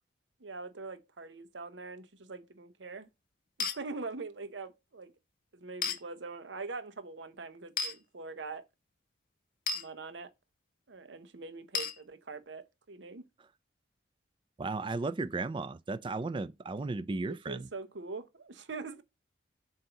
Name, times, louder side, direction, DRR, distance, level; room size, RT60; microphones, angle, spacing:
voice 1, 0.4-3.1 3.6-5.1 5.5-8.6 9.7-10.3 10.9-13.3 17.2-19.0, right 3 dB, 85° right, 0.9 m, -43 dB
sound 1, 3.6-3.8 5.8-6.0 7.8-8.0 9.7-9.8 11.7-12.0, left 5 dB, 55° left, 0.7 m, -32 dB
voice 2, 14.6-17.7, right 3 dB, 30° right, 0.4 m, -35 dB
7.7 x 2.7 x 5.7 m
head